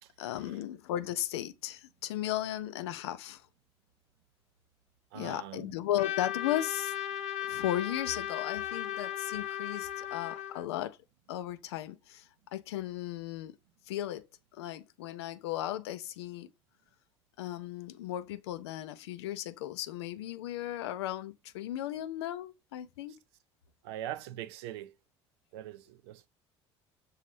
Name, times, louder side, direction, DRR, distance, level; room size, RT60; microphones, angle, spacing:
voice 1, 0.2-3.5 5.1-6.9 7.5-11.0 11.3-13.5 13.9-14.3 14.5-16.5 17.4-23.2, left 13 dB, 70° left, 0.4 m, -36 dB
voice 2, 5.1-5.7 23.8-24.9 25.5-26.3, right 12 dB, 70° right, 0.4 m, -42 dB
Trumpet, 6.0-10.7, left 11 dB, 50° left, 0.9 m, -36 dB
6.1 x 2.8 x 3.0 m
figure-of-eight pair, 55°, 14 cm